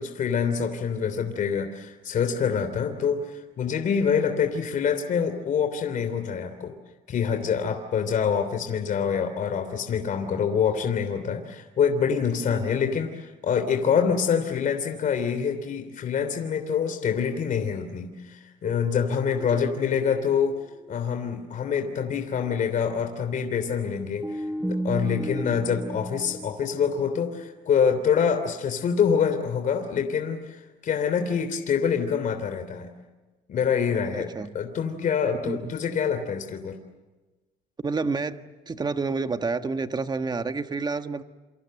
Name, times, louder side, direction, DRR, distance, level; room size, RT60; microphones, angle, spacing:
voice 1, 0.0-6.7 7.1-20.6 20.9-32.9 33.5-34.3 34.5-36.8, left 7 dB, 50° left, 6 dB, 3.2 m, -26 dB
sound 1, 18.6-21.2 21.5-21.6 23.8-27.5, right 1 dB, 5° right, 0.8 m, -35 dB
voice 2, 19.3-19.7 25.2-25.6 33.9-34.5 35.4-35.7 37.8-41.2, right 4 dB, 25° right, 8 dB, 1.5 m, -30 dB
28.5 x 26.5 x 7.8 m, 1.2 s
cardioid pair, 110°, 17 cm